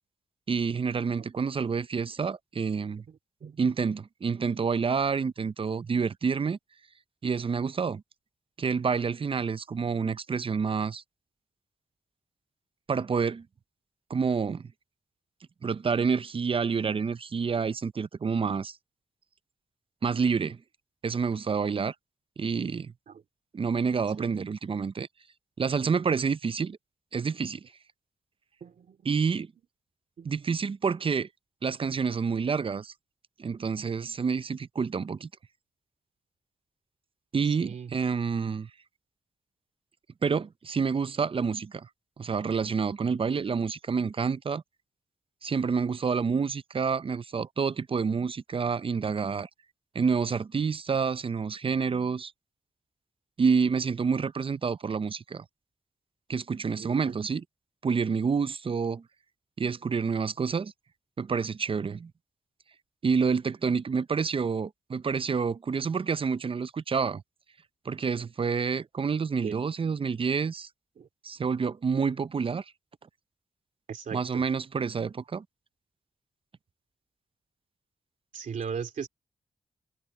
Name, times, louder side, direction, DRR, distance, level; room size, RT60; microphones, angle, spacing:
voice 1, 0.5-3.0 3.6-6.6 7.2-8.0 8.6-11.0 12.9-13.5 14.1-14.7 15.6-18.8 20.0-20.6 21.0-21.9 22.4-22.9 23.5-25.1 25.6-26.8 27.1-27.6 29.0-29.5 30.2-31.3 31.6-32.9 33.4-35.3 37.3-38.7 40.2-41.9 42.2-44.6 45.4-49.5 49.9-52.3 53.4-55.4 56.3-57.4 57.8-59.0 59.6-60.7 61.2-62.1 63.0-67.2 67.9-70.7 71.2-72.6 74.1-75.4, right 5 dB, 40° right, 0.6 m, -28 dB
voice 2, 3.1-3.7 23.1-23.2 24.2-24.3 28.6-29.1 30.2-30.3 37.4-37.9 56.7-57.2 69.4-69.6 71.0-71.1 73.9-74.4 78.3-79.1, right 7 dB, 75° right, 2.9 m, -38 dB
cardioid pair, 60°, 13 cm